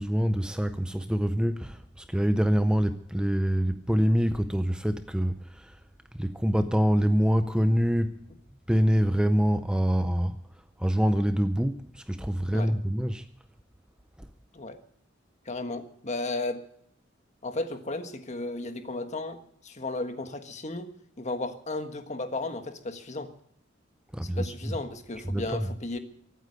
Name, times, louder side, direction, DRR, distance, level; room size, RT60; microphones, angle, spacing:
voice 1, 0.0-5.8 6.1-8.2 8.7-10.4 10.8-13.3 24.1-24.7 25.3-25.7, equal, 5° right, 0.5 m, -25 dB
voice 2, 15.4-16.6 17.4-20.9 21.2-23.3 24.2-26.0, left 2 dB, 35° left, 1.5 m, -34 dB
23.5 x 9.1 x 6.5 m
head